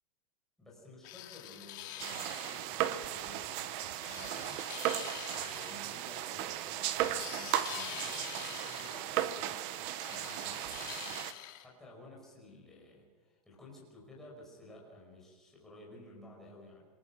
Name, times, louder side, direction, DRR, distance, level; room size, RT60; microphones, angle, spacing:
voice 1, 0.6-5.0 5.3-11.3 11.6-16.9, left 1 dB, ahead, -4 dB, 5.2 m, -54 dB
sound 1, 1.0-2.7 4.0-5.8 7.0-9.0 10.0-11.6, left 13 dB, 35° left, 2.0 m, -45 dB
sound 2, 2.0-11.3, right 12 dB, 25° right, 0.8 m, -36 dB
27.5 x 19.5 x 6.0 m, 1.3 s
supercardioid pair, 180°, 19 cm